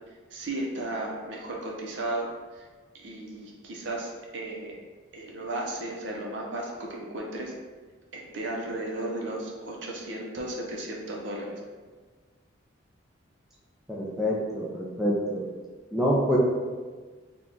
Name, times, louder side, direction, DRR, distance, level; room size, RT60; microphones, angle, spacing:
voice 1, 0.3-2.7 2.9-4.8 5.1-7.5 8.1-11.6, right 1 dB, 60° right, -2 dB, 0.6 m, -34 dB
voice 2, 13.9-15.4 15.9-16.4, equal, ahead, -6 dB, 0.4 m, -26 dB
3.5 x 2.3 x 3.8 m, 1.4 s
head